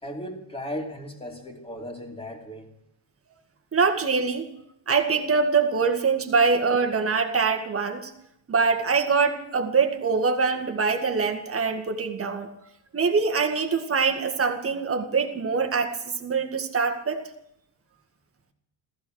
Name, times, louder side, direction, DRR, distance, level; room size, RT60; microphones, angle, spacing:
voice 1, 0.0-2.7, equal, 10° left, 1 dB, 3.0 m, -36 dB
voice 2, 3.7-4.5 4.9-8.1 8.5-12.5 12.9-15.9 16.2-17.2, right 5 dB, 25° right, 5 dB, 1.9 m, -24 dB
15.0 x 15.0 x 6.4 m, 0.76 s
cardioid pair, 125°, 50 cm